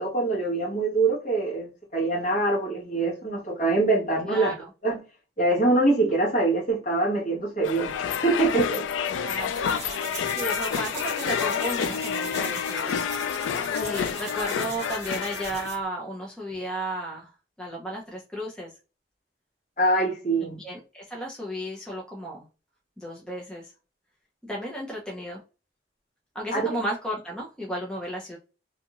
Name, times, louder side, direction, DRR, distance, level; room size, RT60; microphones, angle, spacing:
voice 1, 0.0-5.0 5.4-8.8 19.8-20.6 26.5-26.8, right 2 dB, 40° left, 1.2 m, -24 dB
voice 2, 4.2-4.7 9.2-9.7 10.3-13.0 13.8-17.3 17.6-18.7 20.4-22.4 23.0-23.7 24.4-25.4 26.3-28.4, right 1 dB, 5° left, 0.5 m, -34 dB
sound 1, 7.6-15.7, left 7 dB, 90° left, 0.3 m, -29 dB
sound 2, 9.4-15.9, right 5 dB, 40° right, 1.1 m, -40 dB
2.6 x 2.4 x 2.9 m
head